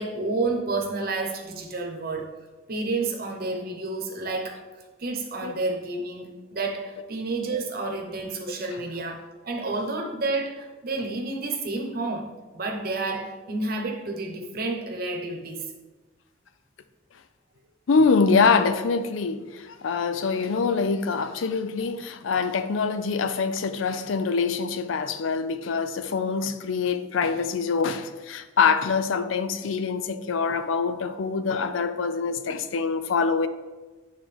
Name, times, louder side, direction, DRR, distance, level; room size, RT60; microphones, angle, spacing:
voice 1, 0.0-2.3 2.7-4.6 5.0-12.3 12.5-15.7, right 3 dB, 50° right, 0.9 m, -30 dB
voice 2, 17.9-33.5, left 5 dB, 80° left, 0.4 m, -24 dB
9.5 x 3.7 x 3.4 m
head